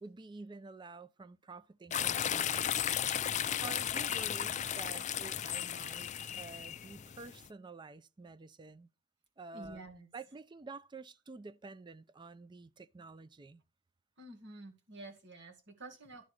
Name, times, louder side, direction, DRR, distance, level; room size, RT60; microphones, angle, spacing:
voice 1, 0.0-6.1 6.4-8.9 9.4-9.8 10.1-13.6, right 3 dB, 25° right, 0.4 m, -49 dB
sound 1, 1.9-7.5, left 10 dB, 35° left, 0.4 m, -35 dB
voice 2, 9.5-10.1 14.2-16.3, right 2 dB, 65° right, 2.0 m, -49 dB
11.0 x 3.9 x 6.3 m
head